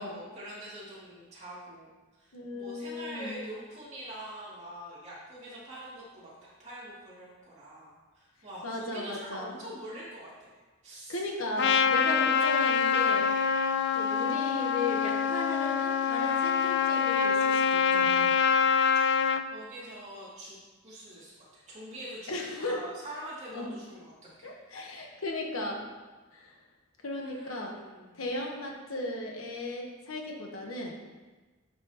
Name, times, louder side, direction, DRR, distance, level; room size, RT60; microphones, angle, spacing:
voice 1, 0.0-10.5 10.8-11.2 11.5-12.2 19.5-24.1 24.4-24.5 27.1-28.2, right 1 dB, 30° right, -8 dB, 2.6 m, -44 dB
voice 2, 2.3-3.4 8.6-9.6 11.1-13.3 13.9-18.4 22.3-22.8 23.5-23.7 24.4-25.8 26.3-26.6 27.0-27.7 28.2-31.0, left 2 dB, 70° left, 0 dB, 1.2 m, -36 dB
Trumpet, 11.6-19.4, left 6 dB, 50° left, 0.4 m, -25 dB
10.5 x 6.1 x 3.0 m, 1.3 s
head